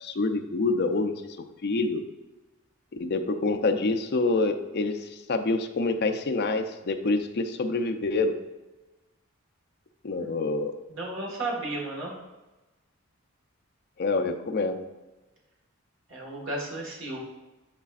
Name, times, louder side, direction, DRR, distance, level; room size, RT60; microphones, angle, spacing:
voice 1, 0.0-1.1 1.6-2.0 3.0-8.4 10.0-10.7 14.0-14.8, left 3 dB, 50° left, 6 dB, 0.5 m, -26 dB
voice 2, 10.9-12.1 16.1-17.2, right 2 dB, 65° right, -2 dB, 1.6 m, -34 dB
9.8 x 4.1 x 2.4 m, 1.1 s
head